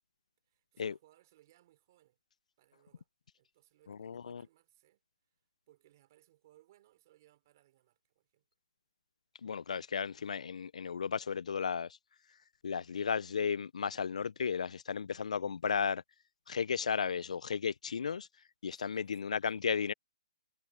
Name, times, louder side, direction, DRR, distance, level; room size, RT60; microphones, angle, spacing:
voice 1, 0.4-2.2 2.6-3.1 3.3-5.0 5.3-5.4 5.7-8.4 18.7-19.3, right 15 dB, 30° right, 3.7 m, -67 dB
voice 2, 3.9-4.4 9.4-11.9 12.6-16.0 16.5-18.3 18.6-19.9, left 6 dB, 90° left, 0.3 m, -34 dB
hypercardioid pair, 175°, 4 cm